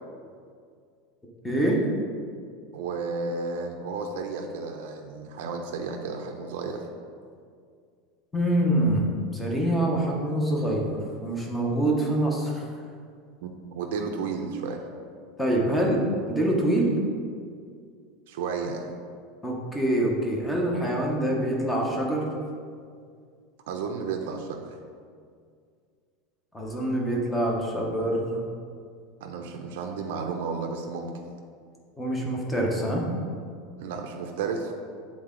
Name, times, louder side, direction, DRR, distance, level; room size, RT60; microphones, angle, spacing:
voice 1, 1.4-1.8 8.3-9.1 9.3-10.9 11.2-12.6 15.4-16.0 16.3-16.9 19.4-22.2 26.5-28.5 32.0-33.0, right 1 dB, 5° left, -1 dB, 0.8 m, -25 dB
voice 2, 2.7-6.8 13.4-14.9 18.3-18.9 23.7-24.8 29.2-31.1 33.8-34.7, right 4 dB, 80° right, 3 dB, 0.5 m, -32 dB
7.7 x 3.6 x 3.8 m, 2.2 s
supercardioid pair, 165°, 0 cm